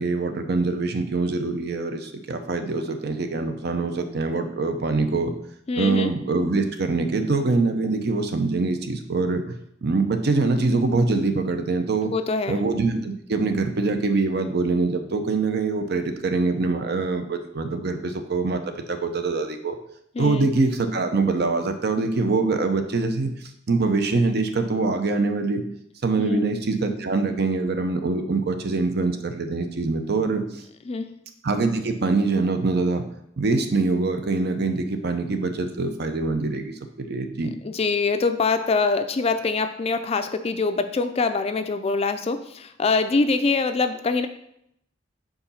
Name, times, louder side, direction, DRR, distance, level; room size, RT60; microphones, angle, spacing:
voice 1, 0.0-5.3 5.7-12.1 12.5-19.8 20.2-25.6 26.0-30.6 31.4-33.0 33.4-37.5, right 3 dB, 60° right, 7 dB, 0.6 m, -24 dB
voice 2, 5.7-6.1 12.0-12.6 20.2-20.5 26.2-26.4 30.9-31.1 37.6-44.3, left 4 dB, 35° left, 9 dB, 0.4 m, -24 dB
4.8 x 3.9 x 5.5 m, 0.76 s
head